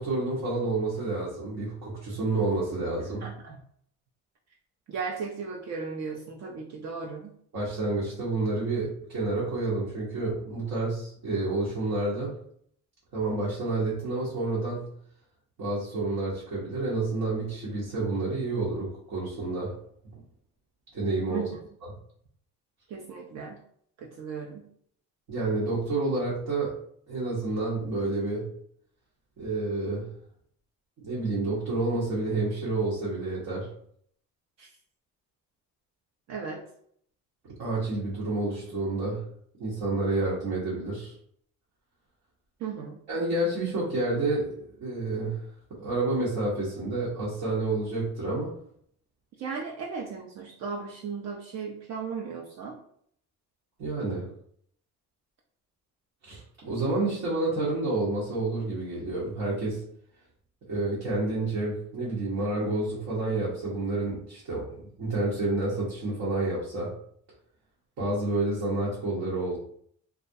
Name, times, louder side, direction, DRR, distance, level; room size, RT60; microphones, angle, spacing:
voice 1, 0.0-3.2 7.5-12.3 13.1-14.8 15.6-19.8 20.1-20.2 20.9-21.5 21.8-21.9 25.3-26.8 27.1-28.5 29.4-30.1 31.0-33.7 37.6-39.3 39.6-41.1 43.1-45.4 45.8-48.6 53.8-54.3 56.2-59.8 60.7-66.9 68.0-69.6, right 2 dB, 75° right, -7 dB, 0.9 m, -29 dB
voice 2, 3.2-3.6 4.9-7.4 21.3-21.5 22.9-23.6 24.0-24.7 34.6-34.7 36.3-36.7 42.6-43.0 49.4-52.8, right 5 dB, 55° right, -1 dB, 0.5 m, -36 dB
2.3 x 2.0 x 2.6 m, 0.63 s
cardioid pair, 110°, 32 cm